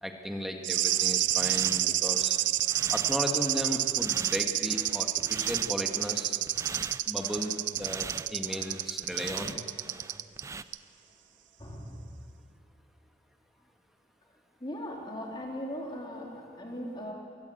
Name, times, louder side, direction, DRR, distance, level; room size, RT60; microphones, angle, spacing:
voice 1, 0.0-2.4 2.9-6.4 7.0-9.6, equal, ahead, 3 dB, 1.7 m, -35 dB
sound 1, 0.6-10.4 10.7-10.8, right 14 dB, 90° right, 0.6 m, -29 dB
sound 2, 0.8-10.6, right 4 dB, 15° right, 0.4 m, -43 dB
voice 2, 11.6-12.1 14.6-17.1, equal, 25° left, -1 dB, 3.4 m, -39 dB
22.5 x 17.0 x 7.9 m, 3.0 s
head